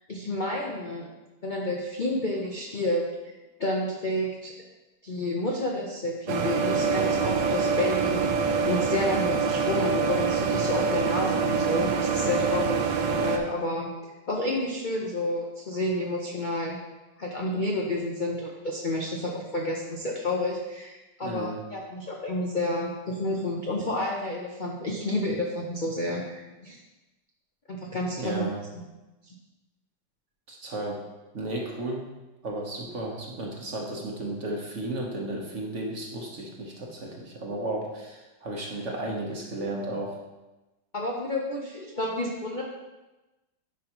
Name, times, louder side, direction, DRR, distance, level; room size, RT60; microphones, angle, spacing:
voice 1, 0.1-1.1 1.4-3.3 3.6-4.5 5.0-8.2 8.6-12.9 13.2-13.9 14.3-16.8 17.2-26.8 27.7-28.5 28.7-28.8 29.3-29.4 40.9-42.6, left 1 dB, 60° left, -2 dB, 0.5 m, -30 dB
sound 1, 6.3-13.4, right 5 dB, 75° right, 1.3 m, -25 dB
voice 2, 21.2-21.6 28.2-28.6 30.5-31.0 31.3-32.0 32.4-40.2, right 1 dB, 45° right, -1 dB, 1.2 m, -33 dB
11.0 x 5.3 x 3.0 m, 1.1 s
omnidirectional pair, 2.0 m